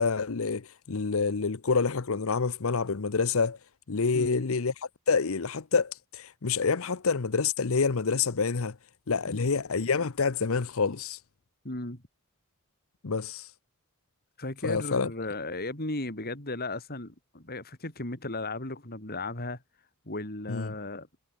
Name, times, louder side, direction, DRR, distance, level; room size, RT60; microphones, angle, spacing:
voice 1, 0.0-3.6 3.9-4.7 5.1-8.8 9.1-11.2 13.0-13.5 14.6-15.1 20.5-20.7, left 5 dB, 65° left, 0.8 m, -27 dB
voice 2, 4.1-4.4 9.3-9.5 11.6-12.0 14.4-19.6 20.0-21.1, left 2 dB, 45° left, 4.4 m, -36 dB
head